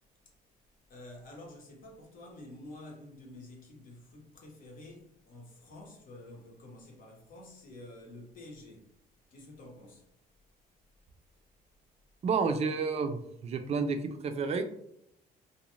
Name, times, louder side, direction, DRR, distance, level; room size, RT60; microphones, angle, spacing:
voice 1, 0.9-8.9 9.3-10.1, left 1 dB, 55° left, 0.8 m, -49 dB
voice 2, 12.2-14.6, right 5 dB, 40° right, 0.4 m, -30 dB
2.5 x 2.1 x 3.0 m
cardioid pair, 110°, 17 cm